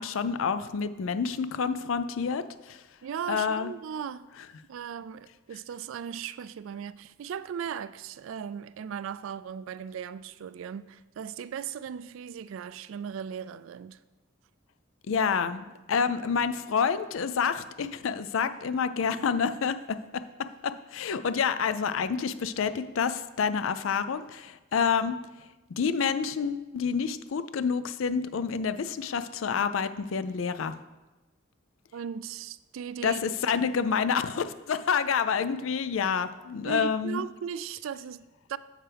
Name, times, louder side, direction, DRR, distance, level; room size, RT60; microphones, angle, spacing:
voice 1, 0.0-2.8 3.3-3.7 15.1-25.2 25.7-30.7 33.0-37.2, left 6 dB, 70° left, 12 dB, 0.4 m, -28 dB
voice 2, 3.0-4.3 4.7-14.0 31.9-33.2 36.6-38.6, right 8 dB, 70° right, 16 dB, 0.3 m, -37 dB
9.0 x 7.4 x 3.4 m, 1.1 s
head